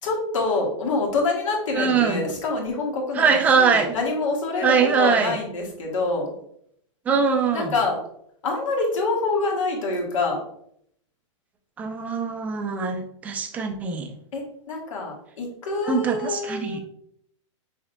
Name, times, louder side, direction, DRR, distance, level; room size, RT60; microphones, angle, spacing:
voice 1, 0.0-6.3 7.5-8.0 8.4-10.4 14.3-16.8, left 3 dB, 90° left, 0 dB, 1.7 m, -26 dB
voice 2, 1.7-2.3 3.1-3.9 4.6-5.4 7.1-7.7 11.8-14.1 15.8-16.8, right 5 dB, 10° right, 5 dB, 0.3 m, -22 dB
5.8 x 3.5 x 2.2 m, 0.70 s
supercardioid pair, 165°, 16 cm